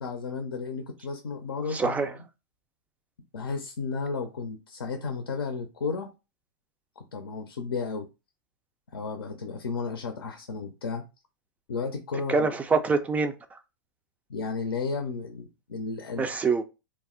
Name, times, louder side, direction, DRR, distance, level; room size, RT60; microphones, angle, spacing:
voice 1, 0.0-2.0 3.3-6.1 7.0-8.1 8.9-11.1 11.7-12.5 14.3-16.3, left 4 dB, 85° left, 0.5 m, -33 dB
voice 2, 1.7-2.1 12.3-13.3 16.2-16.6, right 4 dB, 10° right, 0.3 m, -25 dB
2.3 x 2.0 x 3.6 m
hypercardioid pair, 115°, 12 cm